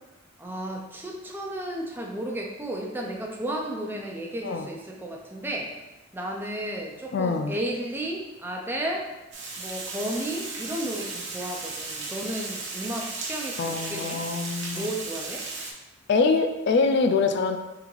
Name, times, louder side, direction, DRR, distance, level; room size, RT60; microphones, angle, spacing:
voice 1, 0.4-5.7 6.1-9.1 9.6-14.2 14.7-15.4, right 1 dB, 10° right, -1 dB, 0.5 m, -33 dB
voice 2, 7.1-7.5 13.6-14.9 16.1-17.6, left 4 dB, 60° left, 6 dB, 0.3 m, -24 dB
Water, 9.3-15.7, right 3 dB, 65° right, 0.8 m, -35 dB
3.8 x 3.4 x 3.2 m, 1.0 s
head